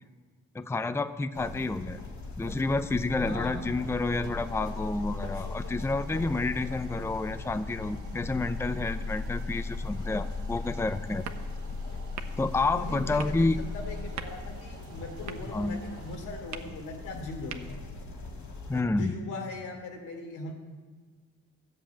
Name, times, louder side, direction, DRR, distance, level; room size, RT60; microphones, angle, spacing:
voice 1, 0.5-2.0 2.4-11.2 12.4-13.6 15.5-15.8 18.7-19.1, left 3 dB, 10° left, 11 dB, 0.6 m, -29 dB
sound 1, 1.3-18.8, left 3 dB, 65° left, 2.7 m, -38 dB
Domestic sounds home sounds, 3.0-16.7, right 5 dB, 85° right, 1.8 m, -54 dB
voice 2, 3.1-3.8 12.6-17.8 18.9-20.5, left 2 dB, 80° left, 2 dB, 3.2 m, -40 dB
sound 2, 11.1-18.0, right 8 dB, 65° right, 1.1 m, -47 dB
13.5 x 7.6 x 8.6 m, 1.5 s
cardioid pair, 90°, 30 cm